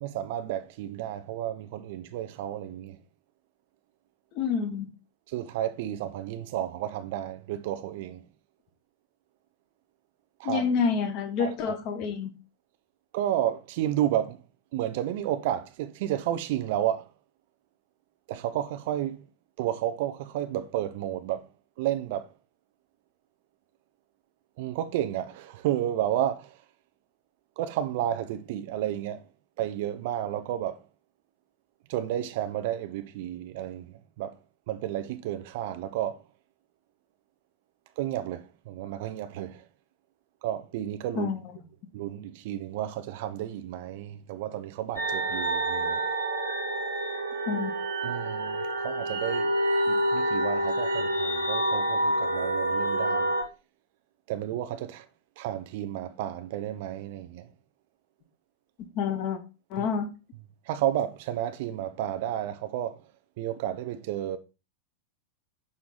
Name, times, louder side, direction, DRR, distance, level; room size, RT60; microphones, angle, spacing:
voice 1, 0.0-3.0 5.3-8.2 10.4-10.7 11.4-11.8 13.1-14.4 14.7-17.1 18.3-19.3 19.6-21.5 21.8-22.3 24.6-26.6 27.6-29.3 29.6-30.8 31.9-34.4 34.7-36.2 38.0-39.7 40.4-41.3 41.9-46.0 48.0-49.5 49.9-53.3 54.3-55.1 55.4-57.5 59.8-59.9 60.7-63.1 63.4-64.4, right 12 dB, 50° right, 0.6 m, -32 dB
voice 2, 4.3-4.9 10.4-12.3 41.1-41.4 47.5-47.7 58.9-59.4 59.7-60.1, left 6 dB, 40° left, 1.3 m, -28 dB
sound 1, 45.0-53.4, right 1 dB, 75° right, 1.4 m, -28 dB
6.4 x 4.7 x 3.9 m
figure-of-eight pair, 90°, 0 cm